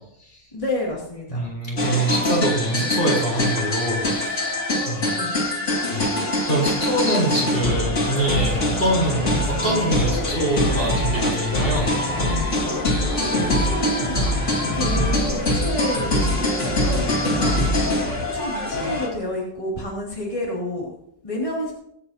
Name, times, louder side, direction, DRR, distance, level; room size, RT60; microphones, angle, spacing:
voice 1, 0.5-1.5 5.1-5.4 12.9-14.2 14.7-17.6 18.3-20.9 21.2-21.7, left 1 dB, 25° left, -5 dB, 2.8 m, -30 dB
voice 2, 1.3-4.5 4.9-5.0 5.9-11.9, right 1 dB, 50° left, -3 dB, 4.3 m, -24 dB
sound 1, 1.8-19.1, left 1 dB, 85° left, 2.8 m, -23 dB
sound 2, 7.6-15.0, equal, 55° right, 2.2 m, -34 dB
24.0 x 8.8 x 2.9 m, 0.74 s
omnidirectional pair, 1.2 m